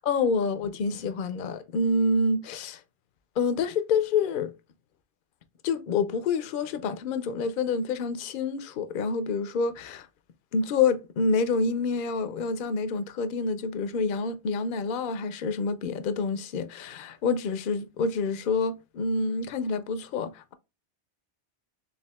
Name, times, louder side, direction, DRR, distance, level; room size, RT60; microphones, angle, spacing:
voice 1, 0.0-2.8 3.4-4.5 5.6-10.1 10.5-20.5, left 4 dB, 60° left, 0.7 m, -27 dB
6.9 x 2.4 x 2.2 m
omnidirectional pair, 1.1 m